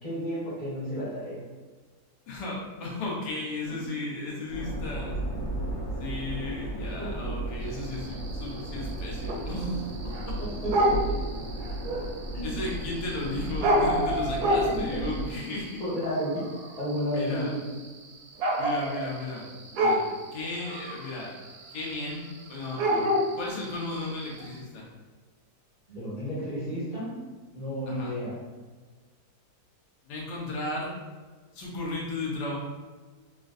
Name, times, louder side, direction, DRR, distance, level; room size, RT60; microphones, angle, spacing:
voice 1, 0.0-1.4 3.7-3.8 7.0-7.1 9.5-9.7 10.4-11.2 12.3-12.5 14.4-14.5 14.9-15.0 15.8-16.4 16.8-17.6 25.9-27.1 27.5-28.4, equal, 25° left, -11 dB, 1.4 m, -32 dB
voice 2, 2.3-5.2 6.0-9.8 10.3-10.4 12.4-15.8 17.1-17.5 18.6-19.4 19.7-20.0 20.3-21.3 21.7-23.1 23.4-24.9 27.9-28.1 30.1-30.9 31.5-32.6, left 2 dB, 80° left, -3 dB, 1.4 m, -35 dB
sound 1, 4.5-15.3, right 1 dB, 60° left, 1.5 m, -34 dB
sound 2, 7.7-24.6, equal, 75° right, 1.0 m, -30 dB
3.6 x 2.4 x 2.4 m, 1.4 s
omnidirectional pair, 1.8 m